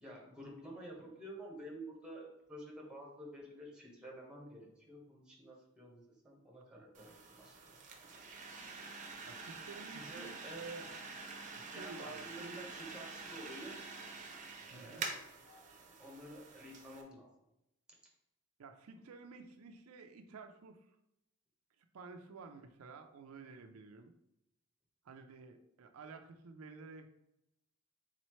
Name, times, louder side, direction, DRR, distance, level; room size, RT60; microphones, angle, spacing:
voice 1, 0.0-7.6 9.9-10.9 11.6-13.8 14.7-15.2 16.0-17.3, right 1 dB, 5° right, -2 dB, 1.2 m, -50 dB
sound 1, 6.9-17.0, right 4 dB, 35° right, 0.7 m, -47 dB
voice 2, 9.2-10.5 11.5-12.6 14.7-15.1 18.6-20.9 21.9-24.1 25.0-27.1, right 4 dB, 80° right, 6 dB, 0.4 m, -52 dB
4.2 x 4.0 x 3.1 m, 0.85 s
head